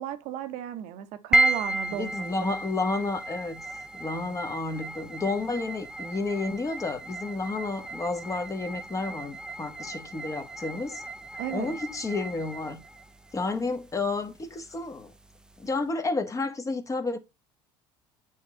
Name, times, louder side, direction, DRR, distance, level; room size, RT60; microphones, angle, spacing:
voice 1, 0.0-2.1 2.4-2.5 11.4-11.8, right 10 dB, 65° right, 0.9 m, -34 dB
sound 1, 1.3-15.8, right 1 dB, 5° right, 0.5 m, -34 dB
voice 2, 1.9-11.0 11.5-12.8 13.3-15.1 15.6-17.2, left 3 dB, 25° left, 1.2 m, -31 dB
8.3 x 3.1 x 3.7 m
hypercardioid pair, 80°, 13 cm